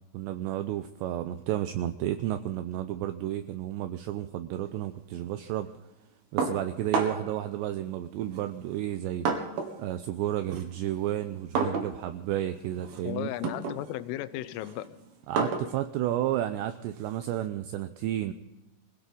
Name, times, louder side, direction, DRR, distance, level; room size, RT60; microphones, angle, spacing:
voice 1, 0.1-5.7 6.3-9.3 9.8-13.3 15.3-18.3, right 12 dB, 80° right, 9 dB, 2.6 m, -32 dB
sound 1, 6.4-7.4 8.3-9.8 10.2-17.5, right 4 dB, 60° right, 3.3 m, -33 dB
voice 2, 13.0-15.0, left 15 dB, 90° left, 14 dB, 3.3 m, -35 dB
21.5 x 17.0 x 3.8 m, 0.99 s
omnidirectional pair, 5.6 m